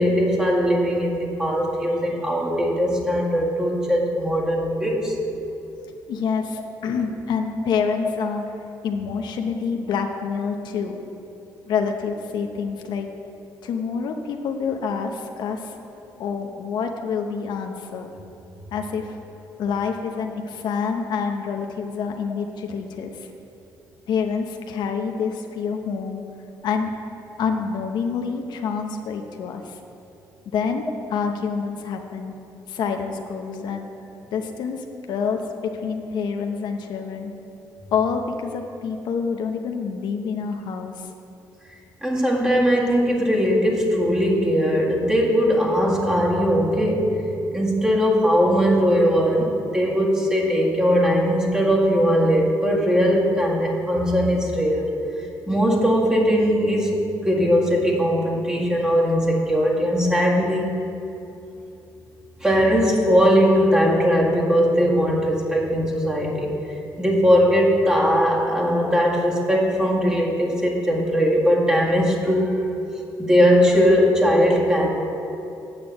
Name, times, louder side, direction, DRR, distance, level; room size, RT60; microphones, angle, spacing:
voice 1, 0.0-5.2 35.8-35.9 42.0-47.2 47.5-54.9 55.5-60.7 62.4-66.6 67.0-72.6 73.2-74.9, equal, 10° right, -3 dB, 1.9 m, -20 dB
voice 2, 6.1-8.4 8.8-11.0 11.7-13.1 13.6-15.7 16.2-18.1 18.7-19.2 19.6-23.3 24.1-26.2 26.6-26.9 27.4-29.8 30.5-32.3 32.7-33.8 34.3-37.3 37.9-41.1, left 6 dB, 80° left, 4 dB, 0.8 m, -27 dB
8.8 x 6.0 x 7.8 m, 2.8 s
cardioid pair, 105°, 7 cm